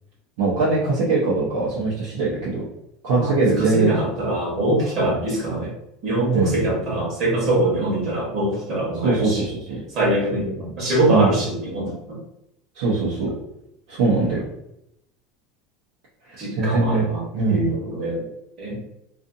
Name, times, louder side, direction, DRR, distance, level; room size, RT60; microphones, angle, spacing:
voice 1, 0.4-2.7 3.0-3.9 5.1-5.2 6.3-6.6 9.0-9.8 10.3-10.7 11.1-11.4 12.7-13.3 13.9-14.4 16.3-17.0 17.3-17.7, right 3 dB, 75° right, -8 dB, 0.8 m, -22 dB
voice 2, 3.2-5.7 6.0-9.4 9.9-10.5 10.8-12.2 16.4-17.2 17.5-18.2 18.6-18.8, right 1 dB, 40° right, -3 dB, 1.1 m, -23 dB
2.6 x 2.5 x 2.6 m, 0.81 s
supercardioid pair, 165°, 0 cm